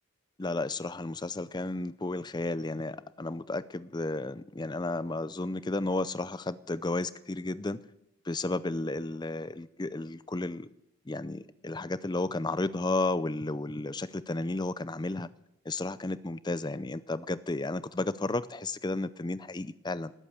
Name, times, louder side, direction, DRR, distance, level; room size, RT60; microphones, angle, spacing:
voice 1, 0.4-7.8 8.2-10.7 11.1-15.3 15.7-20.1, left 2 dB, 20° left, 16 dB, 0.5 m, -33 dB
19.0 x 8.3 x 8.4 m, 0.83 s
head